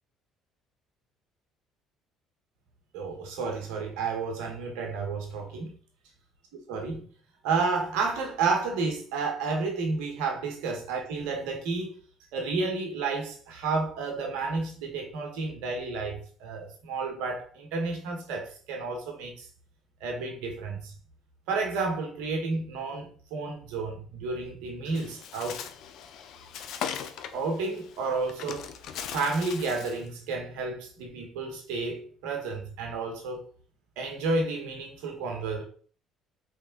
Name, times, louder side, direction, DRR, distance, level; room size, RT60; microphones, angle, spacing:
voice 1, 2.9-5.7 6.7-7.1 7.4-12.0 12.3-19.5 20.0-20.9 21.5-25.6 27.3-28.7 29.1-33.4 34.0-35.6, right 4 dB, 75° right, 1 dB, 1.4 m, -31 dB
Bird, 24.9-30.1, left 8 dB, 65° left, 0.5 m, -39 dB
3.6 x 3.5 x 3.9 m, 0.44 s
hypercardioid pair, 65°, 0 cm